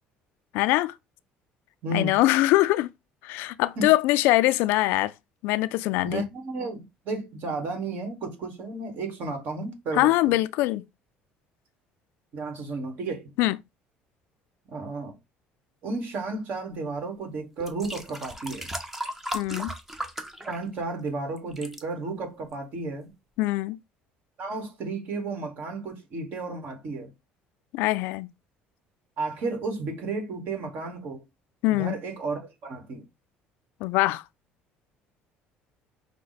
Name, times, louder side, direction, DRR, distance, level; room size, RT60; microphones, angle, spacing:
voice 1, 0.5-0.9 1.9-2.9 3.2-5.1 5.4-6.3 9.9-10.8 13.4-13.6 19.3-19.7 23.4-23.8 27.7-28.3 31.6-32.0 33.8-34.2, left 17 dB, 80° left, 0.3 m, -23 dB
voice 2, 1.8-2.2 3.8-3.9 6.0-10.3 12.3-13.3 14.7-15.1 15.8-18.7 20.5-23.1 24.4-27.1 29.2-31.2 31.7-33.0, right 3 dB, 55° right, 1.5 m, -33 dB
sound 1, 17.0-17.1 17.6-21.1 21.4-21.8 22.5-22.6, equal, 10° right, 0.6 m, -36 dB
5.7 x 2.1 x 4.0 m
cardioid pair, 125°, 4 cm